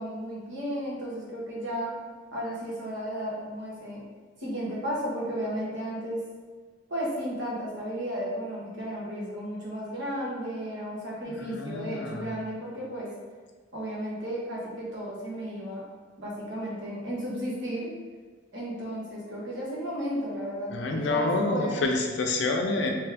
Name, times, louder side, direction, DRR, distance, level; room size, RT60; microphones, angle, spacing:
voice 1, 0.0-2.0 2.3-4.0 4.4-6.2 6.9-13.1 13.7-15.8 16.2-17.9 18.5-22.0, equal, 75° right, -5 dB, 1.2 m, -34 dB
voice 2, 11.3-12.3 20.7-22.9, left 2 dB, 75° left, 3 dB, 0.5 m, -28 dB
3.4 x 3.2 x 3.4 m, 1.4 s
head